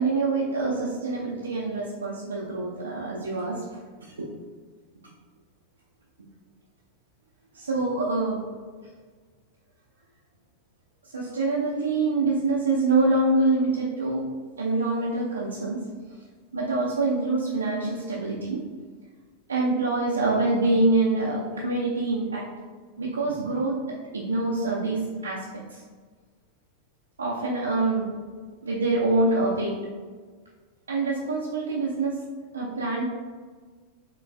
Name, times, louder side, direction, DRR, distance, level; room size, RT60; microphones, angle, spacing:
voice 1, 0.0-3.6 4.0-4.3 7.5-8.4 11.0-14.2 14.6-15.8 16.1-16.2 16.5-18.6 19.5-22.4 23.0-25.4 25.7-25.8 27.2-28.1 28.6-29.8 30.9-32.2 32.5-33.0, right 2 dB, 75° right, -5 dB, 0.5 m, -25 dB
4.9 x 3.1 x 2.2 m, 1.5 s
figure-of-eight pair, 90°, 0 cm